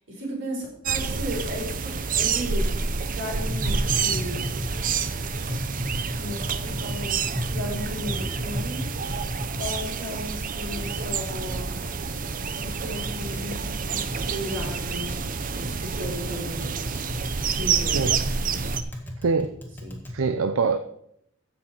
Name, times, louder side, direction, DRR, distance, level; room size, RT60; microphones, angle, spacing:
voice 1, 0.0-2.6 3.1-4.5 6.2-8.8 9.6-11.7 12.4-15.2 15.6-16.9 17.4-18.2 18.5-18.9 19.8-20.0, equal, 65° right, -2 dB, 5.0 m, -35 dB
sound 1, 0.9-18.8, right 5 dB, 40° right, 0.7 m, -28 dB
Tap, 3.3-20.2, left 1 dB, 10° left, 2.0 m, -36 dB
voice 2, 19.2-19.6 20.1-20.8, right 4 dB, 85° right, 9 dB, 0.6 m, -23 dB
15.5 x 6.3 x 4.5 m, 0.73 s
head